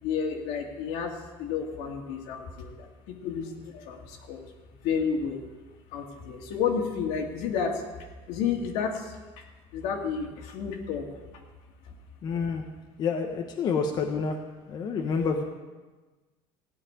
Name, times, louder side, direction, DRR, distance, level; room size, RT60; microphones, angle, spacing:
voice 1, 0.0-1.1 1.4-2.9 3.2-4.4 4.8-5.4 5.9-7.7 8.3-9.1 9.7-11.1, left 6 dB, 75° left, 2 dB, 2.2 m, -30 dB
voice 2, 12.2-12.6 13.0-14.4 14.7-15.4, left 5 dB, 35° left, 2 dB, 1.0 m, -28 dB
16.0 x 5.8 x 9.7 m, 1.3 s
cardioid pair, 165°, 12 cm